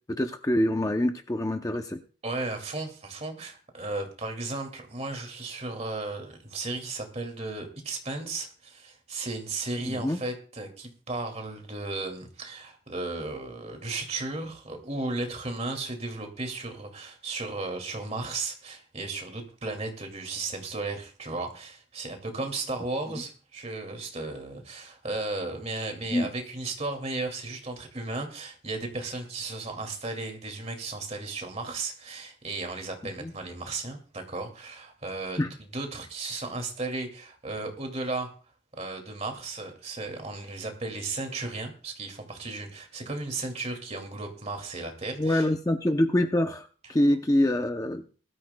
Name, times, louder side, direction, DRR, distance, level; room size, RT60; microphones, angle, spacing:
voice 1, 0.1-2.0 9.9-10.2 23.1-23.2 26.1-26.3 33.0-33.3 35.4-35.5 45.2-48.2, left 1 dB, 15° left, 6 dB, 0.6 m, -26 dB
voice 2, 2.2-38.3 38.7-45.5, right 3 dB, 35° right, 5 dB, 2.3 m, -35 dB
20.5 x 13.0 x 2.2 m, 0.38 s
head